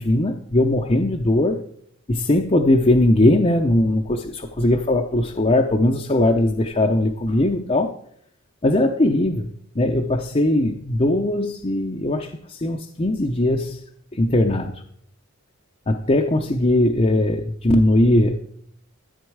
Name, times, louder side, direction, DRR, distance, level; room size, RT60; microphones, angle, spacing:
voice 1, 0.0-1.6 2.1-7.9 8.6-9.5 9.8-13.8 14.2-14.8 15.9-18.4, left 1 dB, 30° left, 2 dB, 0.7 m, -19 dB
13.5 x 8.2 x 4.7 m, 0.66 s
head